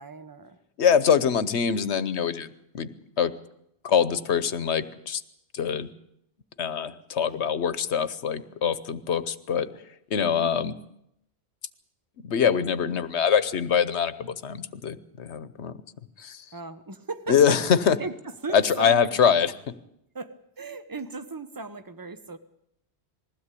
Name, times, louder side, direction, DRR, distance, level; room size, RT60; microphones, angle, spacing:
voice 1, 0.0-0.6 7.2-7.3 10.3-10.5 16.5-17.6 17.8-19.3 20.1-22.4, right 3 dB, 20° right, 10 dB, 1.0 m, -37 dB
voice 2, 0.8-2.9 3.2-3.3 3.8-5.2 5.5-5.9 6.6-9.7 10.1-10.7 12.2-15.7 16.2-16.4 17.3-17.9 18.5-19.5, left 7 dB, 85° left, 14 dB, 1.2 m, -24 dB
21.0 x 15.5 x 8.4 m, 0.79 s
omnidirectional pair, 1.1 m